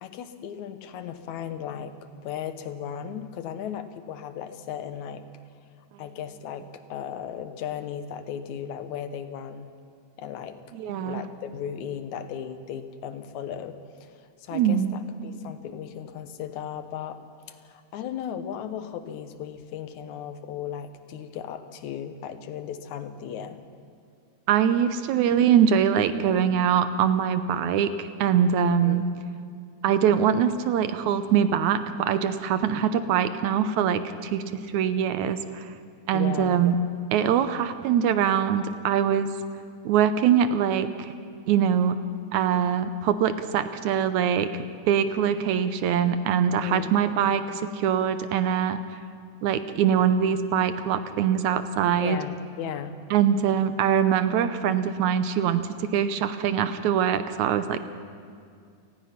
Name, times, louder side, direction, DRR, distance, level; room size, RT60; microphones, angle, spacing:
voice 1, 0.0-5.3 6.0-9.7 10.2-10.6 10.9-17.2 17.5-23.6 28.8-29.0 36.1-36.6 46.6-46.9 52.0-53.0, left 9 dB, 70° left, 10 dB, 2.4 m, -36 dB
voice 2, 10.7-11.3 14.5-14.9 24.5-29.1 29.8-34.4 34.7-35.7 36.1-36.8 37.1-39.3 39.9-41.1 41.5-42.0 42.3-48.8 49.4-52.2 53.1-57.8, right 8 dB, 75° right, 11 dB, 2.1 m, -23 dB
29.0 x 18.5 x 5.9 m, 2.2 s
omnidirectional pair, 3.6 m